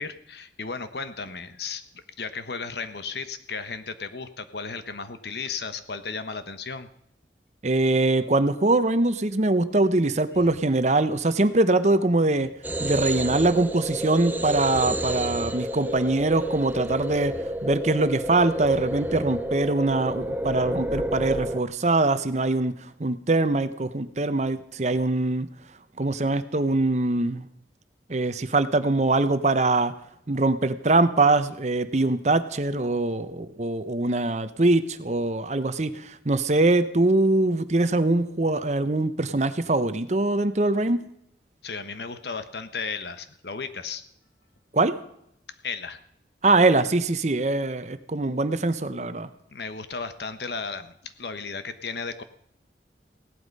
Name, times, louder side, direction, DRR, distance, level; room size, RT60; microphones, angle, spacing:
voice 1, 0.0-1.8 2.2-6.9 41.6-44.0 45.6-46.0 49.5-52.2, left 5 dB, 70° left, 10 dB, 1.2 m, -34 dB
voice 2, 7.6-12.5 12.8-17.3 17.6-22.7 23.0-25.5 26.0-27.4 28.1-29.9 30.3-41.0 44.7-45.0 46.4-49.3, right 2 dB, 40° right, 12 dB, 0.8 m, -23 dB
sound 1, 12.6-21.6, right 1 dB, 10° right, 0.5 m, -30 dB
17.0 x 11.5 x 5.4 m, 0.74 s
head